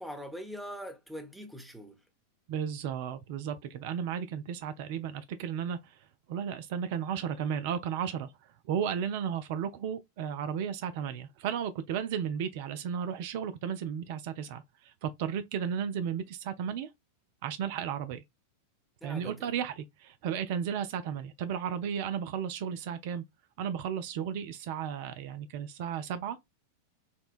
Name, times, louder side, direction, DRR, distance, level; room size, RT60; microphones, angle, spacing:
voice 1, 0.0-2.0 19.0-19.5, equal, ahead, 0.6 m, -42 dB
voice 2, 2.5-6.0 6.3-8.3 8.7-16.9 17.4-18.2 19.0-23.2 23.6-26.4, right 8 dB, 50° right, 0.3 m, -34 dB
4.2 x 2.2 x 2.4 m
figure-of-eight pair, 90°, 0 cm